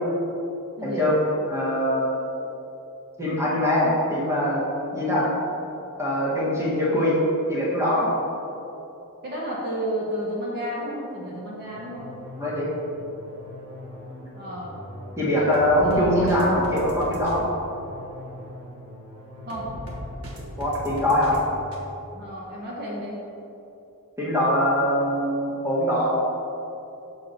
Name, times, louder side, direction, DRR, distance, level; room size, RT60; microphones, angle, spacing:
voice 1, 0.8-1.1 1.5-2.1 3.2-4.6 4.9-5.3 6.0-7.2 7.5-8.1 12.4-12.7 14.1-14.3 15.2-17.5 20.6-21.4 24.2-26.1, left 1 dB, 15° right, -7 dB, 1.8 m, -22 dB
voice 2, 9.2-12.1 14.3-14.7 15.8-16.0 19.5-19.7 22.1-23.2, equal, 50° right, -5 dB, 1.1 m, -32 dB
sound 1, 11.6-21.8, equal, 80° right, 1.3 m, -39 dB
6.9 x 6.2 x 4.2 m, 2.9 s
head